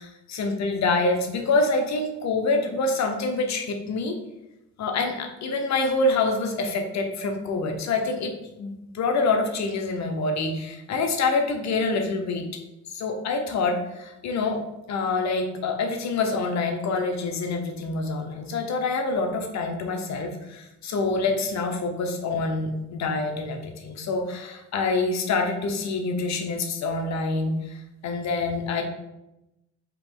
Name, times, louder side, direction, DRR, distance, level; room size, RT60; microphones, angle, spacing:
voice 1, 0.0-4.2 4.8-12.5 12.9-14.6 14.9-28.8, left 3 dB, 65° left, 3 dB, 0.8 m, -26 dB
4.7 x 2.9 x 3.7 m, 0.93 s
cardioid pair, 90°, 30 cm